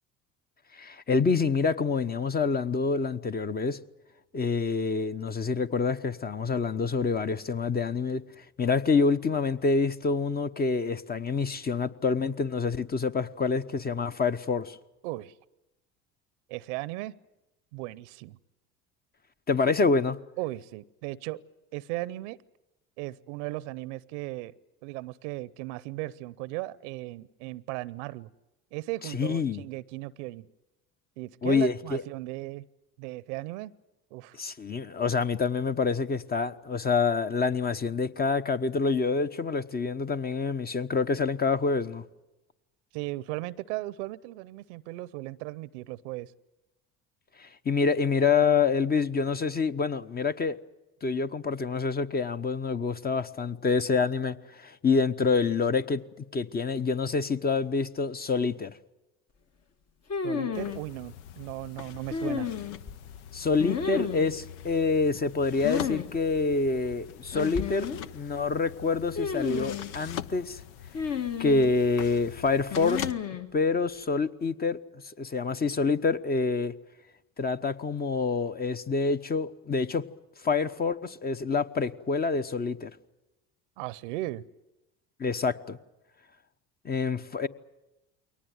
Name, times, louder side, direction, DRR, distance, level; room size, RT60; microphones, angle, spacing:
voice 1, 0.7-3.8 4.3-14.8 19.5-20.2 29.1-29.6 31.4-32.0 34.3-42.0 47.4-50.6 51.0-56.0 56.3-58.8 63.3-70.6 71.4-73.1 73.5-76.7 77.4-80.0 80.4-82.9 85.2-85.8 86.8-87.5, left 4 dB, 25° left, 1.0 m, -27 dB
voice 2, 15.0-15.3 16.5-17.2 17.7-18.4 20.4-21.4 21.7-22.4 23.0-24.5 24.8-28.3 28.7-30.5 31.2-32.6 33.0-33.7 34.1-34.4 42.9-46.3 60.2-62.5 83.8-84.4, right 19 dB, 80° right, 0.7 m, -36 dB
sound 1, 60.1-60.8 62.1-62.9 63.6-64.3 65.6-66.1 66.3-66.4 67.3-68.0 69.2-69.9 70.9-71.7 72.7-73.5, left 7 dB, 45° left, 1.8 m, -32 dB
sound 2, 60.5-73.1, left 10 dB, 80° left, 0.8 m, -42 dB
22.0 x 18.5 x 9.4 m
supercardioid pair, 80°, 34 cm